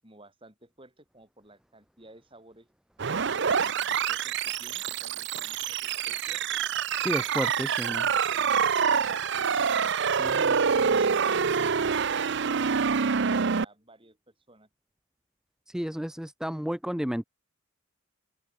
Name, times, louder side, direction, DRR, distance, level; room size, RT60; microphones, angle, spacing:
voice 1, 0.0-2.7 3.2-6.4 7.1-9.5 10.8-11.6 12.0-14.7, right 1 dB, 25° right, 7.0 m, -54 dB
sound 1, 3.0-13.6, right 6 dB, 55° right, 0.6 m, -26 dB
voice 2, 7.0-8.0 10.2-10.6 15.7-17.2, equal, 5° right, 0.4 m, -32 dB
open air
head